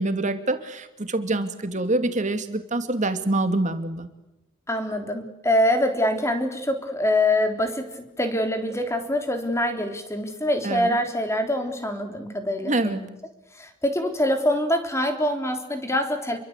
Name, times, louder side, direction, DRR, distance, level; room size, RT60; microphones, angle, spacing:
voice 1, 0.0-4.1 10.6-11.0 12.6-13.0, right 2 dB, 35° right, 8 dB, 2.5 m, -25 dB
voice 2, 4.7-13.1 13.6-16.4, left 1 dB, 15° left, 5 dB, 3.7 m, -24 dB
29.0 x 23.5 x 8.2 m, 0.92 s
head